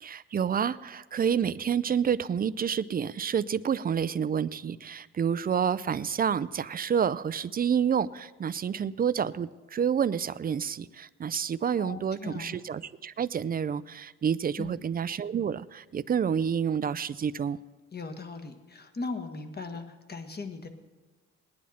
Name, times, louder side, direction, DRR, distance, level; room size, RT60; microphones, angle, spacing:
voice 1, 0.0-17.6, right 7 dB, 30° right, 17 dB, 0.4 m, -29 dB
voice 2, 11.7-12.5 14.6-14.8 17.9-20.7, left 3 dB, 35° left, 7 dB, 1.5 m, -38 dB
19.0 x 10.5 x 4.3 m, 1.3 s
cardioid pair, 90°, 30 cm